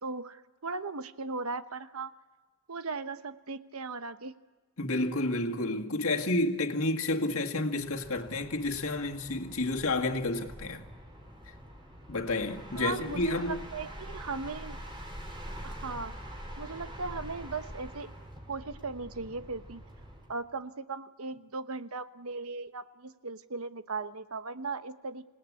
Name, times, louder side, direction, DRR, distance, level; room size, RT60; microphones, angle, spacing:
voice 1, 0.0-2.1 2.7-4.3 12.8-14.8 15.6-16.2 16.6-18.1 18.5-19.8 20.3-25.3, right 4 dB, 85° right, 1.0 m, -38 dB
voice 2, 4.8-10.9 12.1-13.6, left 2 dB, 75° left, 2.0 m, -30 dB
sound 1, 7.7-20.4, equal, 20° right, 4.8 m, -45 dB
27.5 x 18.0 x 8.4 m
head